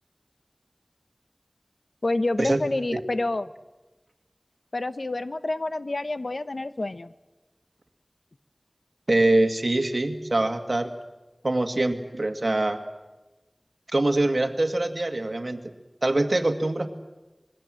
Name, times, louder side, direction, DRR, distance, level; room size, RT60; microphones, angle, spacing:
voice 1, 2.0-3.5 4.7-7.1, left 2 dB, 85° left, 12 dB, 0.9 m, -28 dB
voice 2, 9.1-10.9 11.4-12.8 13.9-15.6 16.0-16.9, right 2 dB, 70° right, 6 dB, 2.0 m, -23 dB
25.5 x 21.5 x 7.7 m, 1.1 s
wide cardioid pair, 45°, 0 cm